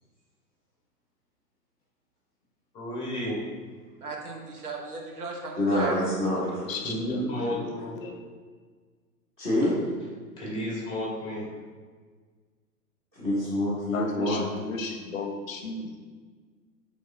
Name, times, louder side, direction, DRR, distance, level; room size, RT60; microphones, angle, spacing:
voice 1, 2.7-3.4 6.8-7.9 10.4-11.4, equal, 10° left, -4 dB, 0.9 m, -32 dB
voice 2, 4.0-6.0 6.5-6.8, right 3 dB, 65° right, 0 dB, 1.0 m, -37 dB
voice 3, 5.6-6.5 9.4-9.7 13.2-14.5, left 1 dB, 5° right, -18 dB, 0.4 m, -26 dB
voice 4, 6.6-8.2 13.9-15.9, left 4 dB, 55° left, 4 dB, 0.6 m, -35 dB
5.2 x 3.5 x 2.4 m, 1.5 s
hypercardioid pair, 125°, 49 cm